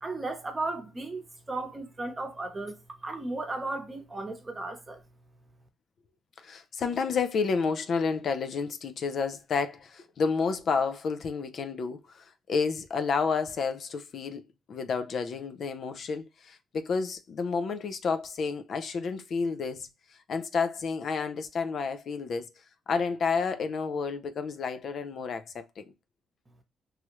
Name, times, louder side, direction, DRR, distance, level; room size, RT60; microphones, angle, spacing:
voice 1, 0.0-5.0, right 2 dB, 25° right, 0.8 m, -35 dB
voice 2, 6.4-14.4 14.7-22.5 22.9-25.9, left 5 dB, 60° left, 0.4 m, -30 dB
3.1 x 2.3 x 3.0 m
cardioid pair, 90°, 0 cm